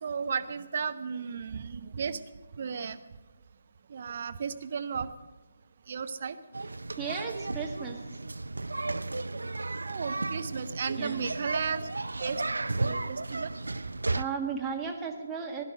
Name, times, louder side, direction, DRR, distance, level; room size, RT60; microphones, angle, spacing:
voice 1, 0.0-2.2 2.5-3.0 3.9-5.1 5.9-6.4 9.8-11.8 12.2-12.4 12.8-13.5, right 6 dB, 50° right, 10 dB, 0.9 m, -34 dB
sound 1, 6.5-14.2, right 2 dB, 75° right, 0.5 m, -34 dB
voice 2, 7.0-8.0 11.0-11.3 14.1-15.6, right 6 dB, 10° right, 0 dB, 1.7 m, -35 dB
16.5 x 11.5 x 6.4 m, 1.1 s
figure-of-eight pair, 145°, 0 cm